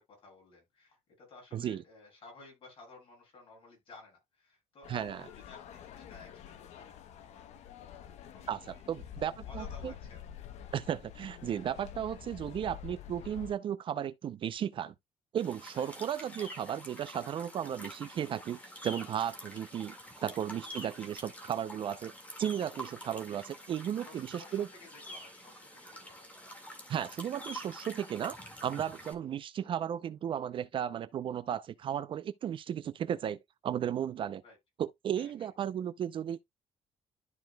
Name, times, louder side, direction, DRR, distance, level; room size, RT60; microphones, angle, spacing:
voice 1, 0.0-7.8 8.3-8.8 9.3-10.2 15.7-16.0 19.5-19.6 20.7-21.1 24.0-26.5 34.4-34.6 35.1-35.5, left 3 dB, 50° left, 6.1 m, -55 dB
sound 1, 4.8-13.5, left 10 dB, 70° left, 0.9 m, -47 dB
voice 2, 8.5-9.9 10.7-14.9 15.3-22.1 22.4-24.7 26.9-34.4 34.8-36.4, right 9 dB, 45° right, 0.5 m, -35 dB
sound 2, 15.4-29.1, equal, 10° left, 1.9 m, -47 dB
12.5 x 4.7 x 2.2 m
cardioid pair, 160°, 12 cm